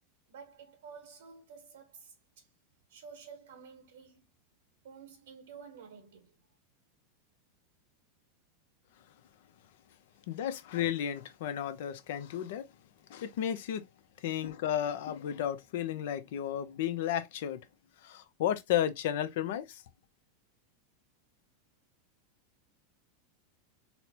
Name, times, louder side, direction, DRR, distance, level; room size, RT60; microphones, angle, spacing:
voice 1, 0.3-2.5 2.9-4.3 4.8-6.5 14.3-14.5, right 6 dB, 85° right, 0.8 m, -51 dB
voice 2, 10.3-12.7 13.1-13.8 14.2-17.6 18.0-19.8, left 10 dB, 70° left, 0.5 m, -33 dB
4.2 x 2.1 x 2.8 m
hypercardioid pair, 115°, 0 cm